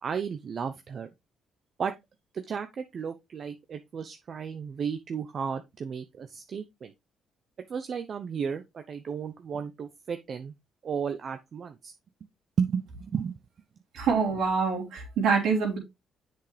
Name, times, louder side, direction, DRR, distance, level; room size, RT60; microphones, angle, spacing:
voice 1, 0.0-1.1 1.8-1.9 2.3-6.9 7.7-10.5 10.8-11.9 12.6-13.4, right 6 dB, 50° right, 0.8 m, -33 dB
voice 2, 13.9-15.8, right 5 dB, 85° right, 3.7 m, -25 dB
7.5 x 6.1 x 3.4 m
cardioid pair, 90°, 0 cm